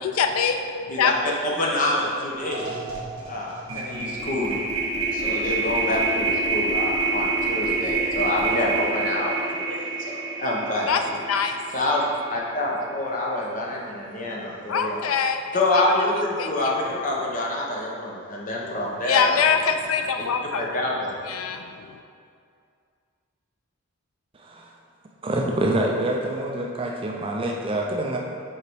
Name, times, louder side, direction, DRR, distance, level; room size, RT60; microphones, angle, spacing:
voice 1, 0.0-1.3 10.9-11.0 11.3-11.6 14.7-15.4 15.7-15.9 16.4-16.7 18.6-20.6 21.3-22.0, left 6 dB, 85° left, 6 dB, 0.4 m, -24 dB
voice 2, 1.4-2.8 3.3-4.6 5.1-11.2 11.7-15.0 15.5-19.3 20.5-21.1, left 1 dB, 40° left, -3 dB, 0.9 m, -27 dB
sound 1, 1.9-2.1 2.4-12.7, right 3 dB, 75° right, 1.5 m, -27 dB
voice 3, 25.2-28.2, right 1 dB, 25° right, 0 dB, 0.4 m, -26 dB
6.3 x 3.9 x 4.6 m, 2.3 s
head